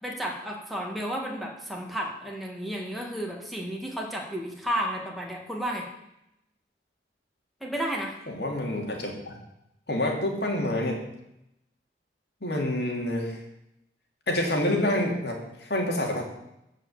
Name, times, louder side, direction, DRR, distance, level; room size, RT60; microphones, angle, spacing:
voice 1, 0.0-5.9 7.6-8.2, equal, ahead, -1 dB, 2.1 m, -32 dB
voice 2, 8.3-9.4 9.9-11.0 12.4-13.4 14.3-16.2, left 1 dB, 65° left, 0 dB, 2.8 m, -27 dB
15.0 x 5.7 x 7.3 m, 0.85 s
head